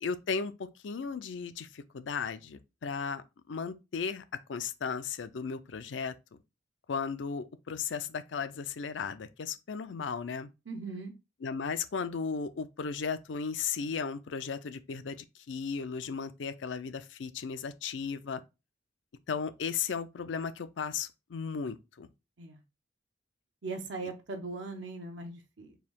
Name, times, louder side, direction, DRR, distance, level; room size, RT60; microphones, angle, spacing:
voice 1, 0.0-4.2 4.5-6.1 6.9-10.5 11.4-15.2 15.5-18.4 19.3-22.1, left 5 dB, 90° left, 0.5 m, -35 dB
voice 2, 10.7-11.1 22.4-22.6 23.6-25.8, right 3 dB, 90° right, 0.8 m, -39 dB
4.5 x 2.7 x 3.6 m
head